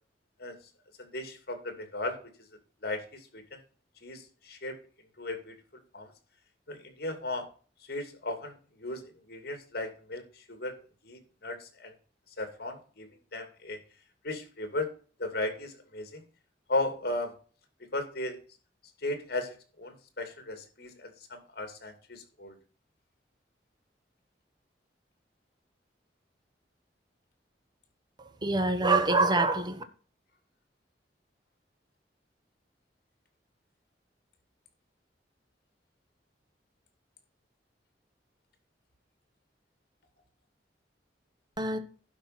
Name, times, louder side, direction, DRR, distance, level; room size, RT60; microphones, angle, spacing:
voice 1, 1.0-2.2 2.8-3.6 4.0-4.7 5.2-5.6 5.9-6.1 6.7-7.5 7.9-10.7 11.0-11.9 12.4-13.8 14.2-14.9 15.2-16.2 16.7-17.3 17.9-18.4 19.0-22.6, left 2 dB, 60° left, 2.6 m, -36 dB
voice 2, 28.2-29.8 41.6-41.8, right 3 dB, 25° right, 1.4 m, -25 dB
11.5 x 5.4 x 5.8 m
head